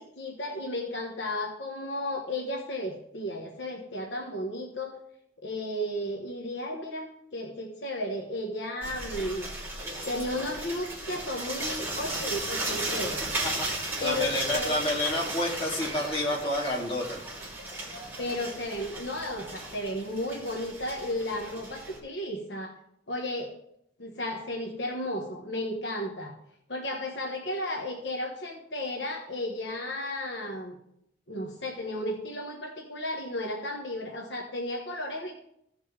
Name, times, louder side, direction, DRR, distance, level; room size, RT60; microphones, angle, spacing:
voice 1, 0.0-4.9 5.4-9.5 10.1-13.2 14.0-14.8 18.2-22.7 23.1-23.5 24.0-26.3 26.7-30.8 31.3-35.3, left 1 dB, 70° left, 1 dB, 1.3 m, -34 dB
sound 1, 8.8-22.0, right 2 dB, 15° right, 2.8 m, -36 dB
voice 2, 13.8-17.2, left 1 dB, 30° left, -4 dB, 2.6 m, -29 dB
16.0 x 5.4 x 3.4 m, 0.75 s
head